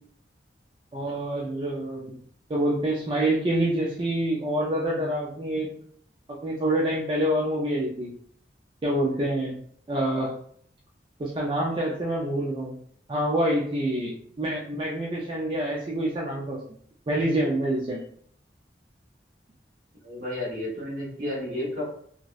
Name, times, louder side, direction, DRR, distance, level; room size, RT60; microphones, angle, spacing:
voice 1, 0.9-2.1 2.5-5.7 6.3-8.1 8.8-9.6 9.9-10.3 11.2-12.7 13.1-16.6 17.1-18.0, right 1 dB, 25° right, -4 dB, 0.3 m, -26 dB
voice 2, 20.0-21.8, left 1 dB, 50° right, -4 dB, 1.0 m, -32 dB
2.7 x 2.0 x 2.3 m, 0.62 s
head